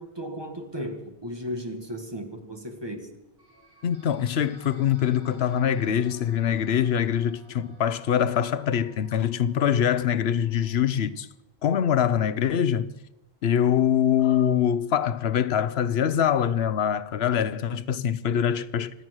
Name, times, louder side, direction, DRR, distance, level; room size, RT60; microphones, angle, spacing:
voice 1, 0.0-3.2, equal, 25° right, 1.6 m, -35 dB
sound 1, 3.4-11.0, right 2 dB, 70° right, 4.8 m, -55 dB
voice 2, 3.8-11.3 11.6-12.9 13.4-18.9, left 9 dB, 85° left, 1.0 m, -24 dB
25.0 x 8.9 x 6.3 m
omnidirectional pair, 1.0 m